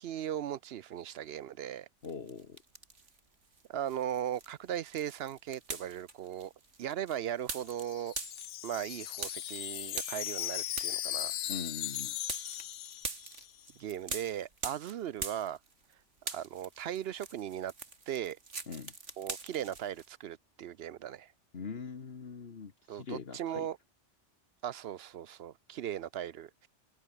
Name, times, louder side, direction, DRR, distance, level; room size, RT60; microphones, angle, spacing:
voice 1, 0.0-1.9 3.7-6.5 6.8-8.1 8.6-11.3 13.8-15.6 16.3-17.7 18.1-18.4 19.2-21.3 22.9-23.8 24.6-26.7, right 10 dB, 65° right, 0.8 m, -38 dB
voice 2, 2.0-2.6 11.5-12.2 18.7-18.9 21.5-23.7, left 5 dB, 55° left, 1.6 m, -42 dB
sound 1, 2.0-3.2 3.5-15.9 16.2-20.1, right 4 dB, 80° right, 2.9 m, -44 dB
Wind chime, 7.6-13.6, left 13 dB, 80° left, 0.9 m, -38 dB
omnidirectional pair, 1.2 m